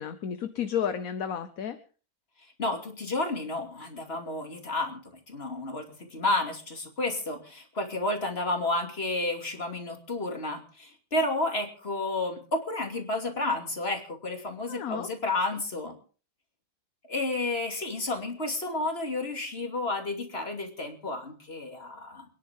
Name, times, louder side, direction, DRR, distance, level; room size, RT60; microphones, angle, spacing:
voice 1, 0.0-1.8 14.7-15.1, left 8 dB, 55° left, 10 dB, 1.2 m, -32 dB
voice 2, 2.6-5.0 5.3-16.0 17.1-22.3, left 2 dB, 30° left, 4 dB, 2.9 m, -31 dB
28.5 x 10.5 x 3.7 m, 0.39 s
omnidirectional pair, 2.0 m